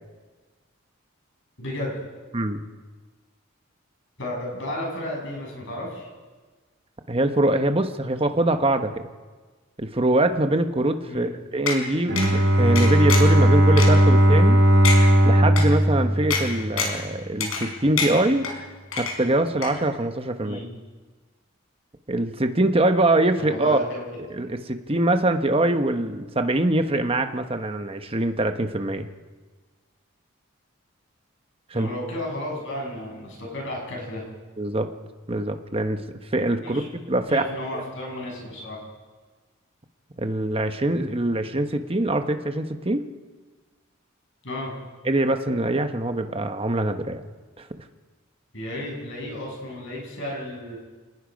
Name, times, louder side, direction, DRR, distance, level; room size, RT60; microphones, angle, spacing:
voice 1, 1.6-1.9 4.2-6.1 11.1-11.3 20.4-20.7 23.4-24.0 31.7-34.2 36.6-36.8 37.3-38.8 44.4-44.7 48.5-50.8, left 1 dB, 60° left, -2 dB, 7.6 m, -33 dB
voice 2, 7.1-9.0 9.8-14.6 15.2-18.5 19.0-20.6 22.1-23.8 24.3-29.0 31.7-31.9 34.6-34.9 35.3-36.0 36.3-36.8 37.1-37.4 37.7-37.8 40.2-43.0 45.0-47.2 47.6-47.7, right 1 dB, 25° right, 7 dB, 1.1 m, -23 dB
sound 1, 11.7-11.8 12.2-12.3 12.8-13.4 13.8-13.9 14.4-14.5 14.8-15.0 15.6-15.7 16.3-16.4 16.8-17.0 17.4-17.7 18.0-18.5 18.9-19.4 19.6-19.7, left 5 dB, 80° left, 4.6 m, -26 dB
Bowed string instrument, 12.1-17.0, equal, 60° right, 2.7 m, -17 dB
27.5 x 19.5 x 5.3 m, 1.4 s
head